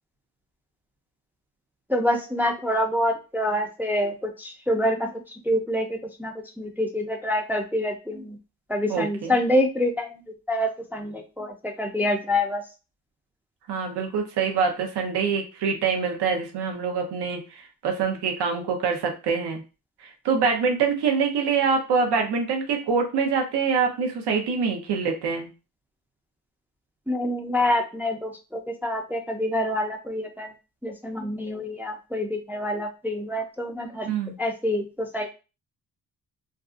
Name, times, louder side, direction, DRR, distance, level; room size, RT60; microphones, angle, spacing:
voice 1, 1.9-5.1 5.5-8.4 8.7-10.2 10.5-12.6 27.1-30.5 30.8-34.1 34.4-35.3, left 1 dB, 5° right, 2 dB, 0.4 m, -26 dB
voice 2, 8.9-9.4 13.7-17.4 17.8-19.6 20.0-25.5 34.1-34.3, right 5 dB, 85° right, 3 dB, 0.7 m, -25 dB
2.6 x 2.3 x 2.4 m, 0.31 s
cardioid pair, 80°, 39 cm